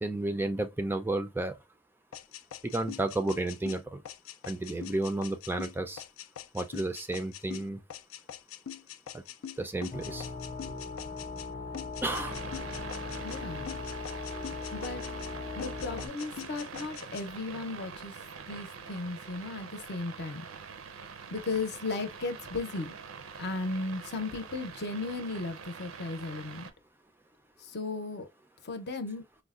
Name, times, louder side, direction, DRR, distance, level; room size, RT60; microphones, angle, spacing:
voice 1, 0.0-1.5 2.6-4.0 4.5-6.0 6.5-7.8 9.1-9.2 9.6-10.3 12.0-12.4, right 2 dB, 10° right, 0.3 m, -32 dB
sound 1, 2.1-11.5 11.7-13.4 13.7-15.3 15.6-17.3, left 9 dB, 90° left, 0.4 m, -44 dB
sound 2, 9.9-16.1, left 3 dB, 20° left, 0.7 m, -39 dB
sound 3, 12.0-26.7, right 5 dB, 90° right, 0.6 m, -45 dB
voice 2, 13.2-13.7 14.7-15.0 15.5-18.1 18.5-20.4 21.3-22.9 23.4-26.7 27.7-28.3 28.6-29.2, left 3 dB, 55° left, 0.7 m, -35 dB
4.6 x 2.1 x 2.4 m
head